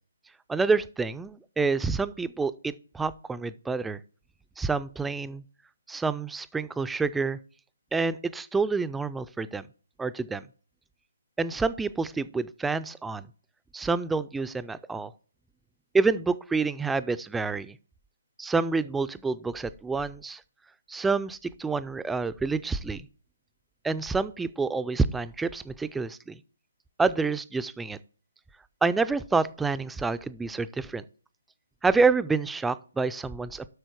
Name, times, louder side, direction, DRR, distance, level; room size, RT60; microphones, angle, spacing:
voice 1, 0.5-4.0 4.6-5.4 5.9-7.4 7.9-9.7 10.0-10.4 11.4-13.3 13.7-15.1 15.9-17.8 18.4-20.4 20.9-23.1 23.8-26.4 27.0-28.0 28.8-31.0 31.8-33.7, right 4 dB, 5° right, 13 dB, 0.3 m, -28 dB
8.0 x 6.2 x 4.5 m, 0.41 s
figure-of-eight pair, 150°, 0 cm